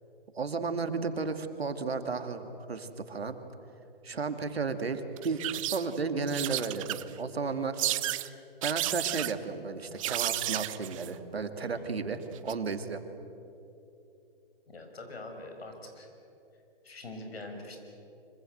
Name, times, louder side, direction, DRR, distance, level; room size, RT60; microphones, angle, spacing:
voice 1, 0.3-3.4 4.0-8.0 8.6-13.0, right 4 dB, 85° right, 8 dB, 2.4 m, -33 dB
sound 1, 5.2-6.0 6.3-7.2 7.8-8.3 8.6-9.3 10.0-11.1 12.4-12.5, right 15 dB, 35° right, 0.8 m, -32 dB
voice 2, 14.7-16.1 16.8-17.8, left 2 dB, 80° left, 4 dB, 6.4 m, -43 dB
25.0 x 24.5 x 7.9 m, 2.8 s
hypercardioid pair, 140°, 30 cm